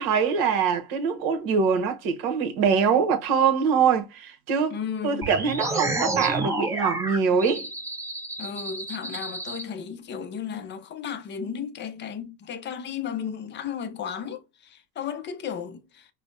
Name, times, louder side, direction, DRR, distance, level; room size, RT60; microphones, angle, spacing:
voice 1, 0.0-4.8 5.0-7.7, right 6 dB, 50° right, 1.2 m, -23 dB
voice 2, 4.7-5.3 8.4-16.1, left 7 dB, 25° left, 0.6 m, -34 dB
sound 1, 5.2-9.6, right 2 dB, 5° right, 0.8 m, -30 dB
5.0 x 2.2 x 2.5 m
hypercardioid pair, 100°, 46 cm